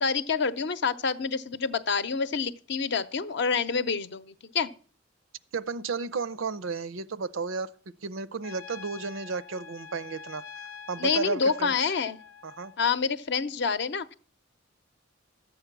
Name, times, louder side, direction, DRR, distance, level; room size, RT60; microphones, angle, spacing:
voice 1, 0.0-4.7 11.0-12.2 12.8-14.1, left 5 dB, 60° left, 0.6 m, -27 dB
voice 2, 5.5-7.7 8.0-10.4 10.9-11.9 12.4-12.7, right 4 dB, 85° right, 0.6 m, -33 dB
Trumpet, 8.4-12.8, left 7 dB, 90° left, 0.7 m, -46 dB
11.5 x 8.0 x 5.9 m
head